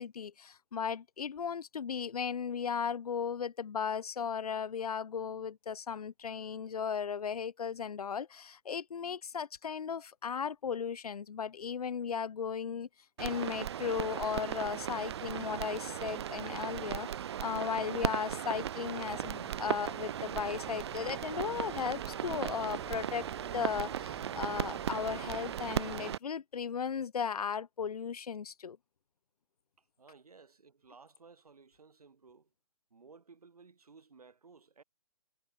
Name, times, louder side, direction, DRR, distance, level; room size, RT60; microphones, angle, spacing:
voice 1, 0.0-12.9 13.2-17.1 17.4-23.3 23.5-28.8, left 7 dB, 90° left, 0.6 m, -36 dB
sound 1, 13.2-26.2, right 10 dB, 45° right, 0.9 m, -37 dB
sound 2, 19.0-26.1, right 3 dB, 5° right, 2.3 m, -53 dB
voice 2, 29.8-32.5 32.9-34.8, right 4 dB, 90° right, 4.2 m, -58 dB
hypercardioid pair, 155°, 19 cm